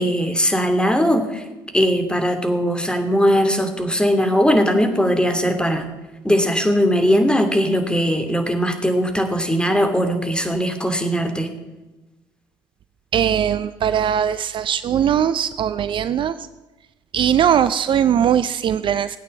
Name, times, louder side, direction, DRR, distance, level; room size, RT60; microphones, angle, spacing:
voice 1, 0.0-1.4 1.7-5.8 6.2-11.5, equal, 10° left, 6 dB, 2.9 m, -19 dB
voice 2, 13.1-16.3 17.1-19.2, right 9 dB, 50° right, 14 dB, 0.5 m, -20 dB
17.0 x 9.0 x 7.9 m, 1.1 s
hypercardioid pair, 50°, 11 cm